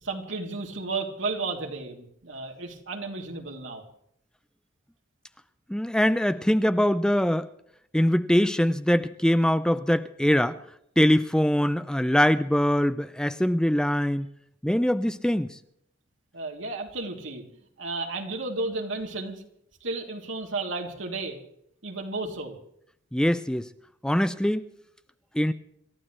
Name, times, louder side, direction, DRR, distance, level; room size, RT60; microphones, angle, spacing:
voice 1, 0.0-3.8 16.3-17.4 17.8-19.4 19.8-21.4 21.8-22.6, right 3 dB, 75° right, 3.2 m, -33 dB
voice 2, 5.7-7.5 7.9-10.6 11.0-14.3 14.6-15.5 23.1-23.7 24.0-24.7 25.3-25.5, equal, 5° left, 0.5 m, -23 dB
27.5 x 14.5 x 3.3 m
head